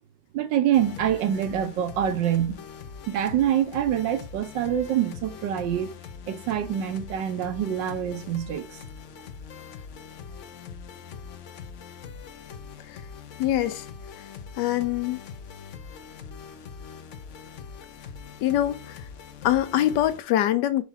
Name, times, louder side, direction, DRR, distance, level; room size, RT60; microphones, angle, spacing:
voice 1, 0.3-2.6 3.1-5.9 6.3-8.8, right 10 dB, 80° right, 1.5 m, -25 dB
sound 1, 0.7-20.2, left 6 dB, 55° left, 0.8 m, -42 dB
voice 2, 13.4-13.9 14.6-15.2 18.4-19.0 19.4-20.8, left 12 dB, 75° left, 1.2 m, -24 dB
4.8 x 4.1 x 5.7 m
omnidirectional pair, 2.0 m